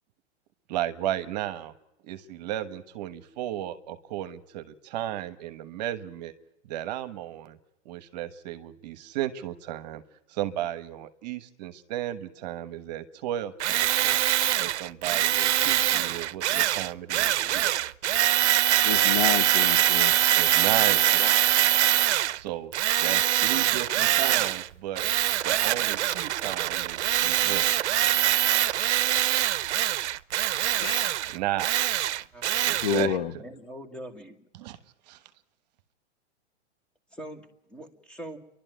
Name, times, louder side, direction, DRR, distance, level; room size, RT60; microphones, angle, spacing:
voice 1, 0.7-1.7 2.0-6.3 6.7-7.6 7.8-10.0 10.3-14.2 14.6-17.8 20.3-21.0 22.3-22.7 23.0-25.1 25.4-27.7 31.3-31.7 32.6-33.4 34.6-34.8 35.1-35.2, right 13 dB, 35° right, 1.2 m, -34 dB
Tools, 13.6-22.4 22.7-24.7 24.9-33.1, right 13 dB, 75° right, 0.7 m, -24 dB
voice 2, 18.8-20.1 20.9-21.4 30.8-31.1 32.5-33.3, left 8 dB, 50° left, 1.3 m, -30 dB
voice 3, 33.4-34.5 37.1-38.4, equal, 5° left, 1.3 m, -42 dB
29.5 x 12.0 x 9.1 m
supercardioid pair, 170°, 34 cm